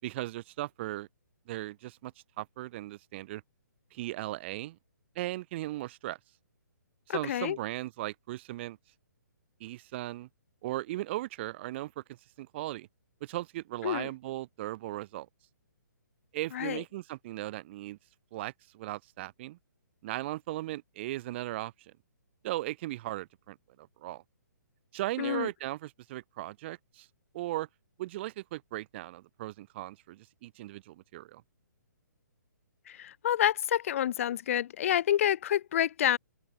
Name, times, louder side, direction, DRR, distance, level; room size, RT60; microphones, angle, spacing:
voice 1, 0.0-1.1 1.5-3.4 3.9-4.8 5.2-6.2 7.1-8.8 9.6-10.3 10.6-12.0 12.4-12.9 13.2-15.3 16.3-18.0 18.3-19.6 20.0-21.9 22.4-24.2 24.9-27.1 27.3-27.7 28.0-31.4, right 16 dB, 35° right, 5.8 m, -37 dB
voice 2, 7.1-7.6 13.8-14.1 16.5-16.8 25.2-25.5 32.9-36.2, left 11 dB, 45° left, 3.0 m, -28 dB
figure-of-eight pair, 130°, 10 cm